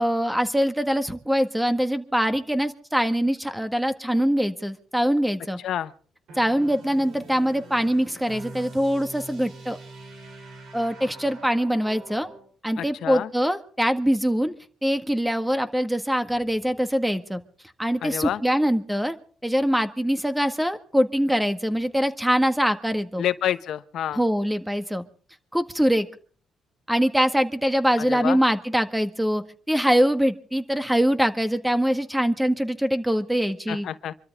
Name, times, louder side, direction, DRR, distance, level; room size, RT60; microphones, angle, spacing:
voice 1, 0.0-5.6 6.4-9.8 10.7-12.3 12.6-14.5 14.8-17.4 17.8-19.2 19.4-23.2 24.1-25.0 25.5-26.1 26.9-33.9, equal, 5° right, 1.7 m, -23 dB
sound 1, 6.3-12.5, right 2 dB, 70° right, 6.9 m, -43 dB
voice 2, 12.8-13.3 18.0-18.4 23.2-24.2 28.0-28.4 33.7-34.1, left 11 dB, 75° left, 0.9 m, -28 dB
26.0 x 13.5 x 3.6 m
cardioid pair, 90°, 0 cm